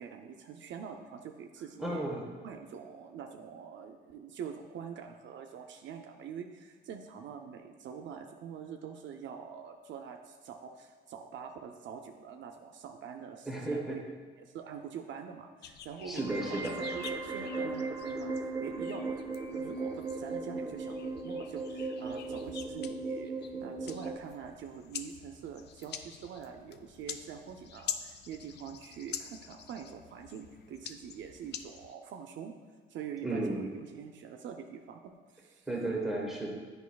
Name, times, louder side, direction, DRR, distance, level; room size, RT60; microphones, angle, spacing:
voice 1, 0.0-2.1 2.4-32.5 32.9-35.7, right 7 dB, 70° right, 5 dB, 0.4 m, -45 dB
voice 2, 1.8-2.2 13.5-14.0 16.1-16.8 33.2-33.6 35.7-36.5, right 2 dB, ahead, -3 dB, 1.2 m, -33 dB
sound 1, 15.6-31.9, left 8 dB, 60° left, 0.4 m, -47 dB
sound 2, 16.2-24.2, right 3 dB, 20° right, 0.7 m, -37 dB
8.2 x 5.2 x 2.3 m, 1.5 s
cardioid pair, 90°, 20 cm